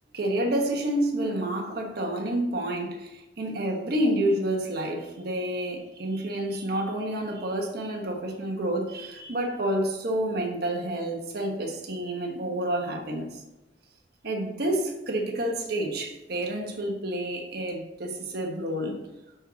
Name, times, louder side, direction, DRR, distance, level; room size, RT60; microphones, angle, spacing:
voice 1, 0.1-13.4 14.2-19.0, right 1 dB, 60° right, 1 dB, 1.2 m, -29 dB
6.5 x 4.4 x 6.1 m, 0.99 s
head